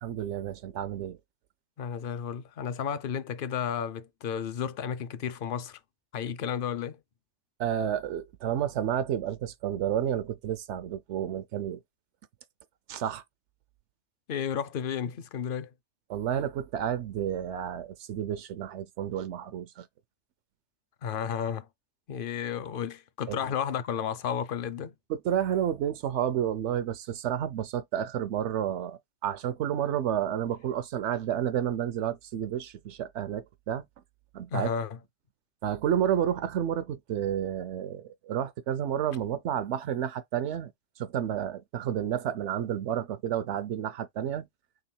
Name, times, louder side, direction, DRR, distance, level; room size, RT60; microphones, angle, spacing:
voice 1, 0.0-1.2 7.6-11.8 12.9-13.2 16.1-19.9 23.3-23.4 25.1-33.8 34.3-34.7 35.6-40.7 41.0-44.5, right 10 dB, 80° right, 0.9 m, -30 dB
voice 2, 1.8-5.8 6.1-7.0 14.3-15.7 21.0-21.7 22.1-24.9 34.5-35.0, left 8 dB, 55° left, 0.7 m, -32 dB
3.9 x 2.9 x 4.3 m
omnidirectional pair, 1.2 m